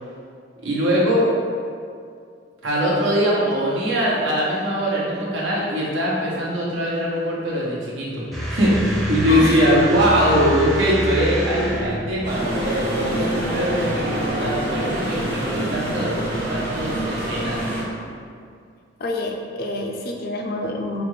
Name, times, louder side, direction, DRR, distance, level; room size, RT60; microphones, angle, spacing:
voice 1, 0.6-1.3 2.6-8.2 8.5-16.2 16.5-17.6, equal, 80° right, -6 dB, 1.1 m, -21 dB
sound 1, 8.3-12.2, equal, ahead, 0.6 m, -27 dB
voice 2, 9.3-9.7 19.0-21.0, left 2 dB, 55° left, 2 dB, 0.4 m, -27 dB
sound 2, 12.2-17.8, right 1 dB, 45° right, 1.3 m, -26 dB
5.1 x 2.4 x 3.2 m, 2.3 s
head